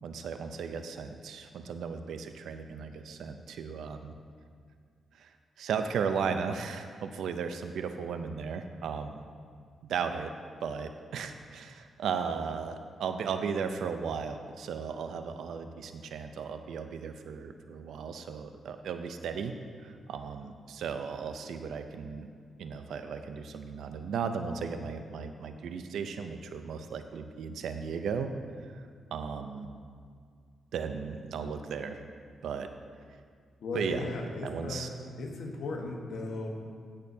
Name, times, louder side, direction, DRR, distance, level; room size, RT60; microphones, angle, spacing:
voice 1, 0.0-4.1 5.2-5.3 5.6-9.2 9.9-10.3 10.6-19.5 19.8-22.3 22.6-28.3 28.7-28.8 29.1-29.7 30.7-32.0 32.4-32.7 33.7-34.1 34.4-34.9, right 6 dB, 80° right, 8 dB, 0.5 m, -36 dB
voice 2, 33.6-36.5, left 2 dB, 75° left, 1 dB, 1.4 m, -36 dB
16.5 x 6.5 x 2.8 m, 2.1 s
cardioid pair, 65°, 0 cm